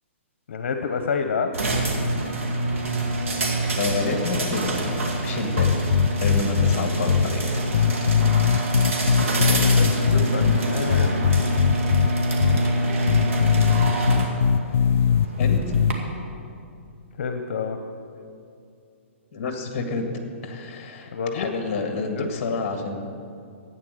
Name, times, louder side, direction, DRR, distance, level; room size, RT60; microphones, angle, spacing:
voice 1, 0.5-1.5 9.3-11.1 17.2-17.8 21.1-21.5 22.0-22.3, left 5 dB, 60° left, 6 dB, 0.9 m, -28 dB
sound 1, 1.5-15.9, right 1 dB, 75° right, 2.3 m, -25 dB
voice 2, 3.7-5.7 6.2-7.4 15.4-15.6 19.3-20.0 20.4-23.0, left 3 dB, 30° left, 4 dB, 1.7 m, -29 dB
sound 2, 5.6-6.8 7.1-7.3 7.7-10.6 10.9-12.1 12.4-12.6 13.1-15.9, left 8 dB, 80° left, 0.3 m, -19 dB
12.5 x 9.1 x 6.5 m, 2.5 s
hypercardioid pair, 165°, 7 cm